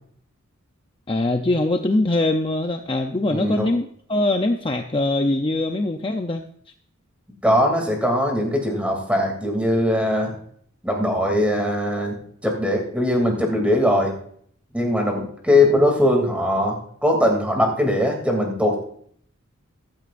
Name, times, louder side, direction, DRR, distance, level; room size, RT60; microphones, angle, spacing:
voice 1, 1.1-6.4, left 2 dB, 25° left, 5 dB, 0.6 m, -22 dB
voice 2, 3.3-3.7 7.4-10.3 10.8-12.1 12.4-14.1 14.7-16.8 17.0-18.8, left 1 dB, 5° right, 1 dB, 2.7 m, -20 dB
15.0 x 12.5 x 2.5 m, 0.62 s
head